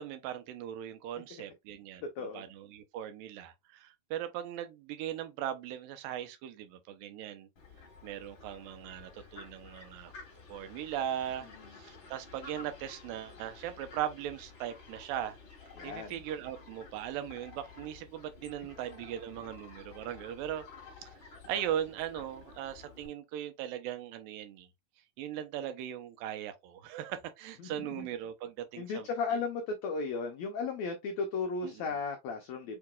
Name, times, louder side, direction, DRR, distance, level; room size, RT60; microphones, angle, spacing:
voice 1, 0.0-7.5 8.0-10.1 10.5-11.5 11.7-15.4 15.8-20.6 21.0-21.1 21.5-24.7 25.2-29.4 31.6-32.0, right 10 dB, 80° right, 2.4 m, -39 dB
voice 2, 2.2-2.5 15.8-16.1 27.6-28.1 28.8-32.8, left 4 dB, 85° left, 1.6 m, -35 dB
Fowl, 7.6-23.1, left 4 dB, 45° left, 2.1 m, -52 dB
6.7 x 2.9 x 2.3 m
omnidirectional pair, 4.1 m